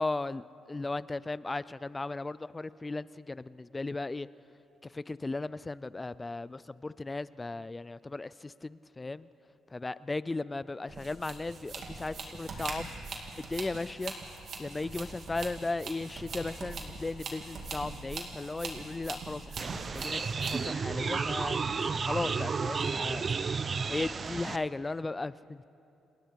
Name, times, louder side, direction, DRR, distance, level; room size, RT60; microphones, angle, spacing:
voice 1, 0.0-4.3 4.9-9.3 9.7-12.9 13.4-14.1 14.6-20.2 20.6-21.6 22.0-23.2 23.9-25.6, left 3 dB, 20° left, 18 dB, 0.5 m, -36 dB
sound 1, 10.9-20.7, right 3 dB, 60° right, 3.0 m, -42 dB
sound 2, 19.6-24.6, right 5 dB, 40° right, 0.7 m, -32 dB
29.0 x 21.0 x 4.7 m, 2.9 s
cardioid pair, 90°, 0 cm